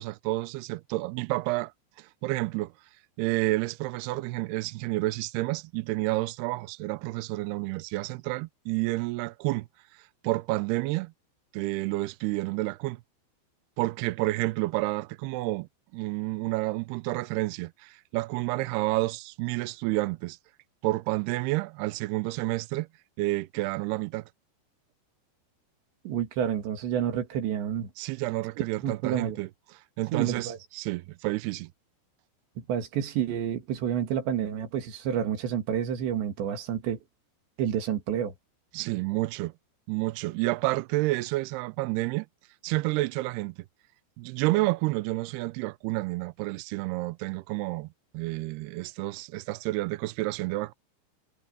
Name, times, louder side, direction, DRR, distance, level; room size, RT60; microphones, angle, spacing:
voice 1, 0.0-1.7 2.0-2.7 3.2-9.7 10.2-11.1 11.5-13.0 13.8-20.4 20.8-22.9 23.2-24.2 28.0-29.5 30.0-31.7 38.7-39.5 39.9-42.3 42.6-43.6 44.2-47.9 48.1-50.7, right 20 dB, 90° right, 2.4 m, -30 dB
voice 2, 26.1-27.9 28.6-29.4 30.1-30.6 32.7-37.0 37.6-38.3, right 9 dB, 75° right, 4.4 m, -29 dB
omnidirectional pair, 5.3 m